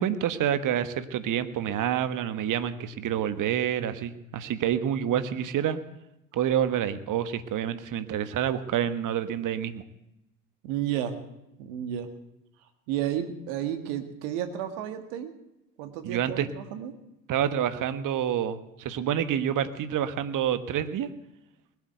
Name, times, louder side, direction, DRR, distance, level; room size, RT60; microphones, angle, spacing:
voice 1, 0.0-5.8 6.3-9.8 16.0-16.5 17.3-21.1, right 9 dB, 50° right, 11 dB, 1.4 m, -28 dB
voice 2, 10.6-11.2 11.6-12.1 12.9-15.3 15.8-16.9, right 10 dB, 70° right, 8 dB, 1.9 m, -32 dB
20.0 x 8.5 x 8.0 m, 0.89 s
hypercardioid pair, 65°, 40 cm